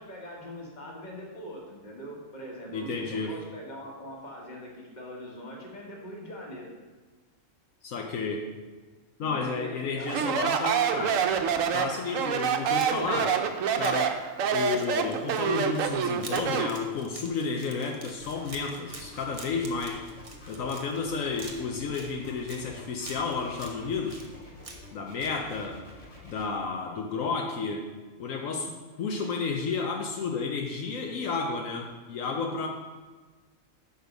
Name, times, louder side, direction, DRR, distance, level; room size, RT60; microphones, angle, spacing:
voice 1, 0.0-6.7 9.2-10.4 12.6-12.7, equal, 35° left, -1 dB, 1.4 m, -42 dB
voice 2, 2.7-3.4 7.8-8.5 9.2-11.3 11.7-13.4 13.8-14.3 14.5-20.0 20.5-24.2 24.9-25.8 26.2-27.9 28.2-32.7, left 4 dB, 75° left, 2 dB, 1.1 m, -32 dB
Speech, 10.1-16.8, right 7 dB, 75° right, 1.0 m, -26 dB
sound 1, 12.6-13.2 13.8-14.1 14.7-21.0 21.4-22.6 23.0-23.7 24.1-24.9 25.2-25.4, right 3 dB, 35° right, 0.7 m, -46 dB
sound 2, 18.2-26.4, left 2 dB, 60° left, 2.2 m, -48 dB
6.4 x 5.1 x 5.1 m, 1.3 s
omnidirectional pair, 1.4 m